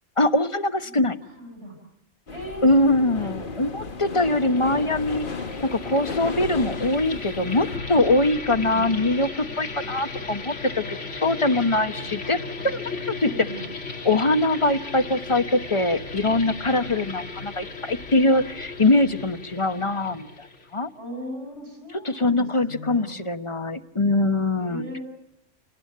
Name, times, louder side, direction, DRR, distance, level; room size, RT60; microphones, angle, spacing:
voice 1, 0.2-1.2 2.6-5.3 5.7-12.4 12.6-13.5 14.0-20.5 20.7-20.9 21.9-24.8, left 2 dB, 25° left, 10 dB, 1.1 m, -23 dB
voice 2, 1.2-1.8 2.3-3.3 8.5-8.9 12.2-12.4 13.3-13.6 16.9-17.1 20.9-23.2 24.6-25.0, equal, 75° right, 3 dB, 6.9 m, -38 dB
sound 1, 2.3-7.8, left 4 dB, 45° left, 1.4 m, -34 dB
sound 2, 4.1-20.8, left 3 dB, 85° left, 2.6 m, -36 dB
28.0 x 19.5 x 8.5 m, 0.81 s
omnidirectional pair, 1.2 m